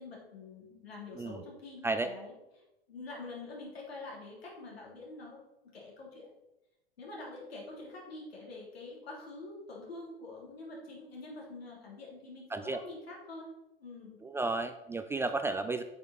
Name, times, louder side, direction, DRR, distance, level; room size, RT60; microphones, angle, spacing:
voice 1, 0.0-2.3 2.9-6.3 7.0-13.5 13.8-14.2, left 2 dB, 85° left, -3 dB, 3.5 m, -46 dB
voice 2, 14.2-15.8, right 2 dB, 10° right, 9 dB, 0.3 m, -32 dB
8.6 x 6.8 x 4.2 m, 0.95 s
hypercardioid pair, 100°, 30 cm